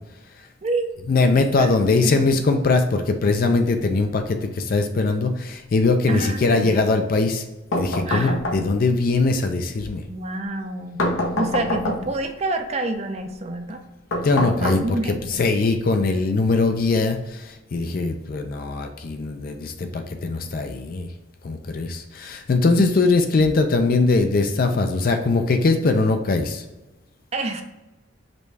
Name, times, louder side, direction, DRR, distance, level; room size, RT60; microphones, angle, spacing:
voice 1, 1.1-7.4 7.8-10.0 14.2-21.1 21.4-26.6, left 3 dB, 45° left, 6 dB, 0.4 m, -21 dB
voice 2, 6.1-6.8 8.1-8.3 10.1-11.0 11.4-13.8 14.6-15.4 22.8-22.9 27.3-27.6, right 2 dB, 35° right, 6 dB, 0.4 m, -28 dB
sound 1, 7.7-9.0 11.0-12.3 14.1-15.3, left 1 dB, 90° left, 0.8 m, -26 dB
5.1 x 2.2 x 4.7 m, 1.0 s
head